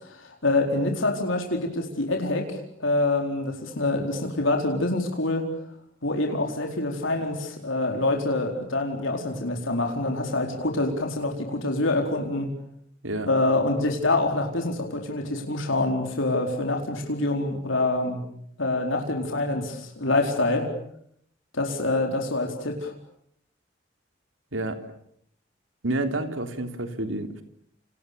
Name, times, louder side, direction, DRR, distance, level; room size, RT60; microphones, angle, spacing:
voice 1, 0.0-5.5 6.0-12.5 13.3-18.2 18.6-20.7 21.5-22.9, left 2 dB, 90° left, 3 dB, 4.6 m, -26 dB
voice 2, 25.8-27.4, right 2 dB, 85° right, 7 dB, 3.6 m, -29 dB
29.5 x 28.5 x 7.1 m, 0.70 s
head